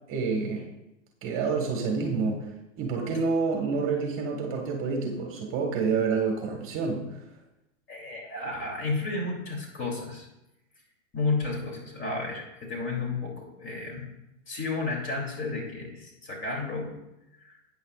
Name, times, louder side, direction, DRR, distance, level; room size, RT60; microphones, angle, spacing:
voice 1, 0.1-0.7 1.2-2.5 2.8-7.2, right 4 dB, 35° right, 1 dB, 1.6 m, -28 dB
voice 2, 7.9-10.3 11.1-14.1 14.5-17.0 17.4-17.6, left 3 dB, 30° left, 0 dB, 3.0 m, -32 dB
12.5 x 9.2 x 2.4 m, 0.90 s
hypercardioid pair, 120°, 38 cm